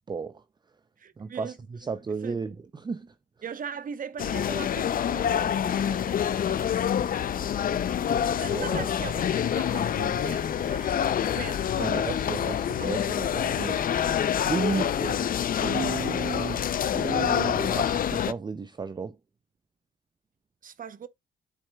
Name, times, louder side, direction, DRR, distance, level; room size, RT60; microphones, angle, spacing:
voice 1, 0.1-0.4 1.2-1.5 1.8-3.1 8.5-8.9 11.8-13.8 14.4-15.3 15.6-19.2, right 5 dB, 20° right, 0.5 m, -33 dB
voice 2, 1.0-1.6 2.1-2.4 3.4-7.9 8.3-12.5 12.8-13.6 14.7-14.8 20.6-21.1, right 7 dB, 45° right, 0.8 m, -41 dB
sound 1, 4.2-18.3, left 9 dB, 45° left, 0.5 m, -27 dB
12.0 x 4.3 x 2.2 m
cardioid pair, 90°, 20 cm